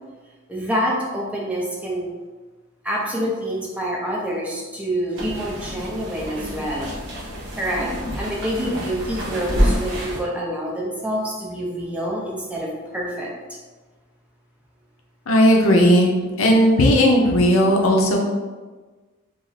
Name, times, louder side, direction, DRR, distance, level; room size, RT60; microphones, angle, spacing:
voice 1, 0.5-2.1 2.8-6.9 7.5-13.3, equal, 5° right, -4 dB, 0.4 m, -27 dB
sound 1, 5.2-10.2, equal, 60° right, 0.9 m, -27 dB
voice 2, 15.3-16.1 16.4-18.2, equal, 80° left, 0 dB, 0.5 m, -15 dB
2.4 x 2.0 x 3.7 m, 1.3 s
head